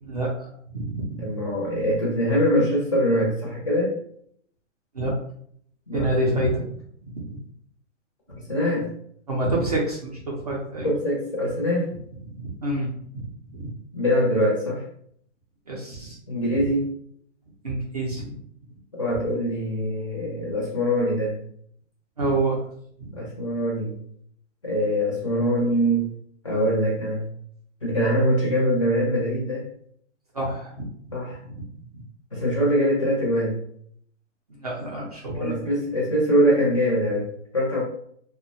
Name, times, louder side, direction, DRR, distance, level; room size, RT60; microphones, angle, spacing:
voice 1, 0.0-1.4 4.9-5.1 5.9-6.7 7.2-7.4 9.3-10.9 12.4-12.9 13.1-13.7 15.7-16.2 17.6-18.4 22.2-22.6 23.0-23.1 30.3-30.9 31.4-31.5 34.5-35.5, right 2 dB, 35° right, -3 dB, 0.4 m, -27 dB
voice 2, 1.2-4.0 5.9-6.2 8.3-8.9 10.8-12.0 13.9-14.8 16.3-16.9 18.9-21.4 23.1-23.9 24.6-26.1 26.4-27.3 27.8-29.7 31.1-31.4 32.3-33.6 35.4-37.8, equal, 25° left, -4 dB, 0.6 m, -23 dB
2.7 x 2.1 x 2.6 m, 0.65 s
hypercardioid pair, 170°, 37 cm